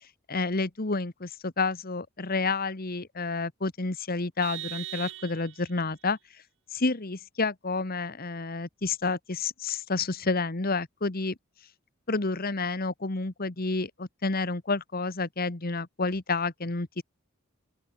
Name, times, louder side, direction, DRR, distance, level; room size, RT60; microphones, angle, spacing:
voice 1, 0.3-6.2 6.7-11.3 12.1-17.0, left 3 dB, 45° left, 1.4 m, -30 dB
Vehicle horn car horn honking, 4.4-5.8, right 13 dB, 65° right, 2.0 m, -39 dB
open air
head